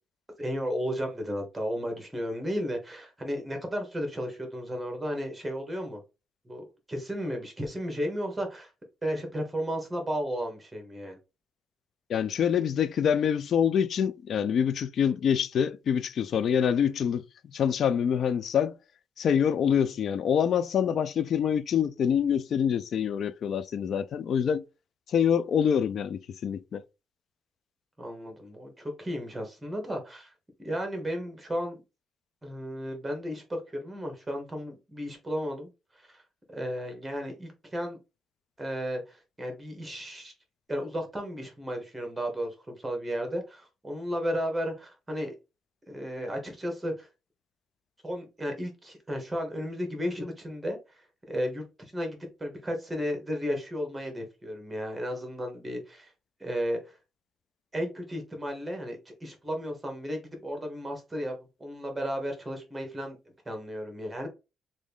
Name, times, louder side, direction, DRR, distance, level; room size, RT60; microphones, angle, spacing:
voice 1, 0.4-6.0 6.4-8.7 9.0-11.2 28.0-30.3 30.6-31.8 32.4-35.7 35.9-36.2 36.5-38.0 38.6-40.3 40.7-45.3 45.9-47.1 48.0-56.1 56.4-57.0 57.7-63.2 63.4-64.3, equal, 15° right, 1.3 m, -34 dB
voice 2, 12.1-18.8 19.2-24.6 25.1-26.8, left 8 dB, 60° left, 0.3 m, -26 dB
3.2 x 2.6 x 3.5 m
cardioid pair, 90°, 0 cm